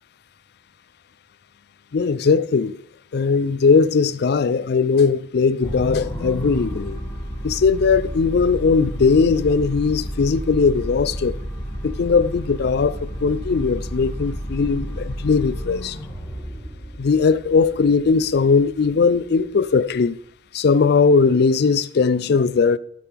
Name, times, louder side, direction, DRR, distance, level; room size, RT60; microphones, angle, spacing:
voice 1, 1.9-2.8 3.1-7.0 7.4-11.4 11.8-16.0 17.0-20.2 20.5-22.8, left 5 dB, 60° left, 0.4 m, -19 dB
sound 1, 5.6-20.1, equal, 15° left, 3.2 m, -31 dB
12.5 x 7.6 x 3.4 m
head